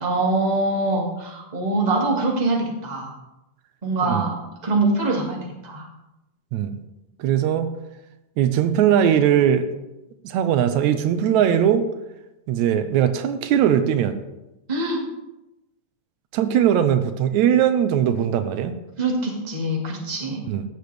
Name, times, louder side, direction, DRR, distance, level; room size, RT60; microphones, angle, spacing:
voice 1, 0.0-3.1 3.8-4.4 4.6-5.8 14.7-15.0 19.0-20.4, right 2 dB, 20° right, -1 dB, 1.4 m, -23 dB
voice 2, 7.2-7.7 8.4-9.7 10.2-11.9 12.5-14.2 16.3-18.7 20.5-20.6, right 9 dB, 85° right, 9 dB, 2.0 m, -20 dB
16.0 x 6.8 x 3.4 m, 0.95 s
omnidirectional pair, 3.3 m